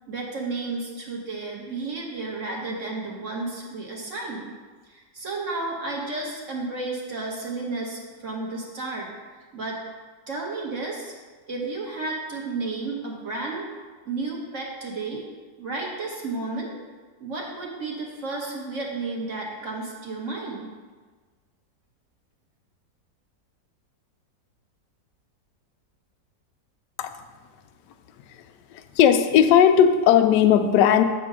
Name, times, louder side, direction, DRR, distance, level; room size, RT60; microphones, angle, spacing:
voice 1, 0.1-4.5 4.9-9.1 9.5-9.8 10.3-11.1 11.5-13.7 14.0-15.2 15.6-16.7 17.2-20.7, right 3 dB, 45° right, -2 dB, 1.4 m, -32 dB
voice 2, 28.7-31.0, left 9 dB, 75° left, 7 dB, 1.2 m, -17 dB
8.0 x 3.8 x 6.1 m, 1.4 s
omnidirectional pair, 2.0 m